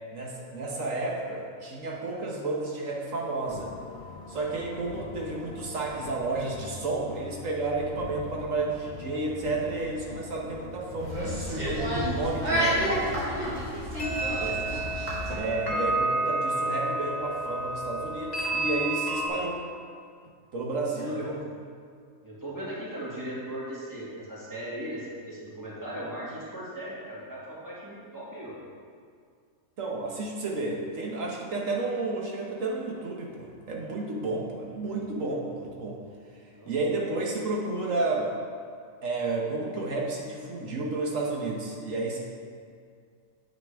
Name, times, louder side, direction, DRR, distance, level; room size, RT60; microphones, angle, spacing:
voice 1, 0.1-3.7 4.3-13.1 14.4-14.5 15.3-19.6 20.5-21.5 29.8-36.0 36.3-38.3 39.0-42.2, right 2 dB, 65° right, -1 dB, 1.4 m, -31 dB
sound 1, 3.5-11.7, left 4 dB, 85° left, 0.4 m, -43 dB
sound 2, 3.6-5.5 5.8-5.9 6.1-6.2 13.1-13.2 14.0-19.3, right 2 dB, 30° left, 1.7 m, -31 dB
sound 3, 11.0-15.3, equal, 50° right, 2.4 m, -29 dB
voice 2, 14.0-14.7 21.0-21.3 22.2-28.5 36.5-36.9, right 1 dB, 15° right, -8 dB, 2.1 m, -38 dB
9.1 x 7.7 x 3.5 m, 2.2 s
omnidirectional pair, 1.5 m